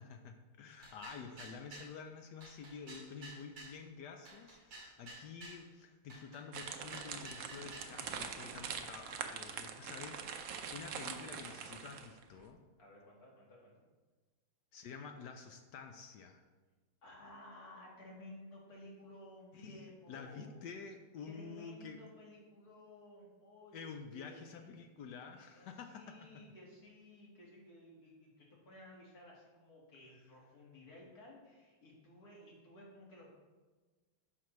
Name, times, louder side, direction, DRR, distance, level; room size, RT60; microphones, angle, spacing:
voice 1, 0.0-12.6 14.7-16.4 19.5-22.0 23.7-26.3, left 5 dB, 75° left, 5 dB, 1.0 m, -49 dB
sound 1, 0.8-1.9 2.4-3.8 4.3-5.6 6.1-7.9, right 2 dB, 60° right, 3.0 m, -52 dB
sound 2, 6.5-12.2, right 7 dB, 85° right, 0.7 m, -44 dB
voice 2, 12.8-13.8 17.0-20.7 21.2-23.8 24.1-24.7 25.5-33.3, left 1 dB, 45° left, -4 dB, 2.4 m, -56 dB
9.9 x 5.9 x 3.1 m, 1.3 s
omnidirectional pair, 2.3 m